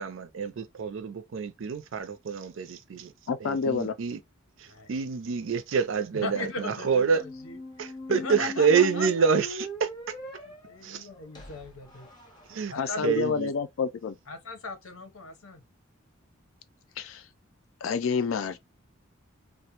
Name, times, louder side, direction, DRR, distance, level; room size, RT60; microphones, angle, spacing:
voice 1, 0.0-3.1 3.4-4.2 4.6-7.2 7.8-9.9 10.8-11.1 12.5-12.7 13.0-13.5, right 6 dB, 65° right, 0.4 m, -27 dB
voice 2, 3.3-4.0 12.7-14.2 17.0-17.2 17.8-18.6, left 5 dB, 75° left, 0.4 m, -28 dB
voice 3, 6.1-9.3 10.4-12.1 12.7-13.2 14.3-15.6, left 3 dB, 90° left, 0.8 m, -38 dB
sound 1, 7.1-13.0, left 1 dB, 20° left, 0.6 m, -41 dB
2.4 x 2.1 x 2.8 m
head